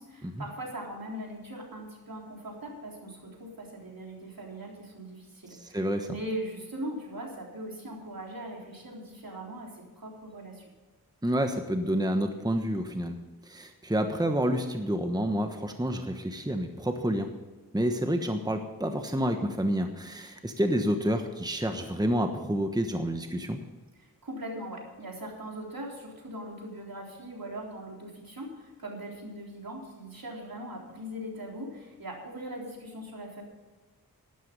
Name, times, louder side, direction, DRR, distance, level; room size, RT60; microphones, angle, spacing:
voice 1, 0.0-10.6 24.0-33.4, right 1 dB, 70° right, -1 dB, 3.8 m, -40 dB
voice 2, 5.6-6.1 11.2-13.2 13.5-17.3 17.7-23.6, equal, 10° right, 6 dB, 1.2 m, -29 dB
12.5 x 11.5 x 5.4 m, 1.3 s
wide cardioid pair, 55°, 36 cm